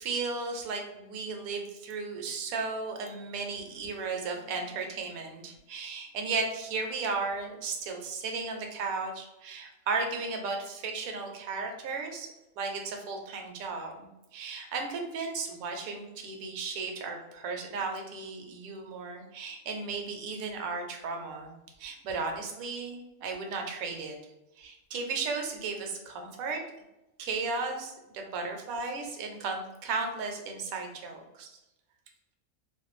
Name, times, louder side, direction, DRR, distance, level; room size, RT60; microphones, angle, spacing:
voice 1, 0.0-12.3 12.6-24.2 24.6-26.6 27.2-31.5, right 4 dB, 80° right, 3 dB, 1.0 m, -35 dB
2.5 x 2.2 x 3.0 m, 0.94 s
omnidirectional pair, 1.5 m